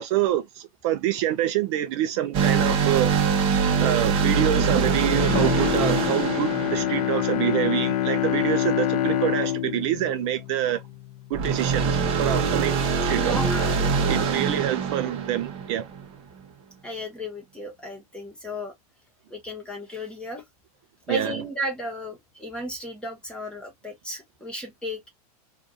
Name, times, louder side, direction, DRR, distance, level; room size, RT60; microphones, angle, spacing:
voice 1, 0.0-3.1 3.8-10.8 11.3-13.4 14.1-15.9 21.1-21.4, right 12 dB, 50° right, 0.5 m, -26 dB
sound 1, 2.3-7.8 11.3-16.1, right 5 dB, 30° right, 1.0 m, -24 dB
Bowed string instrument, 5.0-11.3 11.7-11.8, left 11 dB, 70° left, 0.6 m, -26 dB
voice 2, 13.2-13.8 16.8-18.7 19.3-20.4 21.1-25.1, equal, 5° left, 1.2 m, -34 dB
2.6 x 2.6 x 3.7 m
supercardioid pair, 145°, 20 cm